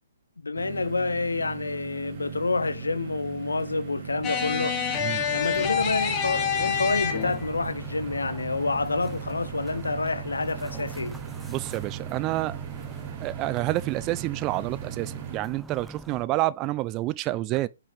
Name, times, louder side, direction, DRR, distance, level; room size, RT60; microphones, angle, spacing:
voice 1, 0.4-4.8 5.3-11.2, left 3 dB, 85° left, 0.7 m, -28 dB
sound 1, 0.5-15.4, right 10 dB, 45° right, 1.1 m, -39 dB
sound 2, 4.2-7.5, left 8 dB, 25° left, 1.5 m, -27 dB
sound 3, 5.2-16.3, right 2 dB, 5° right, 0.8 m, -44 dB
voice 2, 11.5-12.6 13.2-17.7, right 17 dB, 30° right, 0.4 m, -28 dB
5.6 x 5.3 x 3.4 m
figure-of-eight pair, 130°, 0 cm